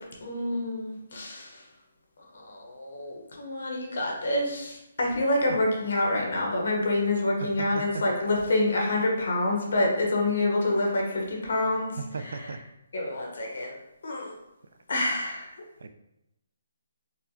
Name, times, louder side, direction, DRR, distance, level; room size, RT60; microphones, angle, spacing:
voice 1, 0.2-1.5 2.3-11.9 12.2-12.5 12.9-13.7 14.0-14.3 14.9-15.5, left 2 dB, 60° left, -1 dB, 1.0 m, -27 dB
voice 2, 7.6-8.0 12.1-12.6 15.8-15.9, right 4 dB, 70° right, 8 dB, 0.3 m, -36 dB
4.3 x 2.2 x 2.7 m, 0.88 s
hypercardioid pair, 170°, 0 cm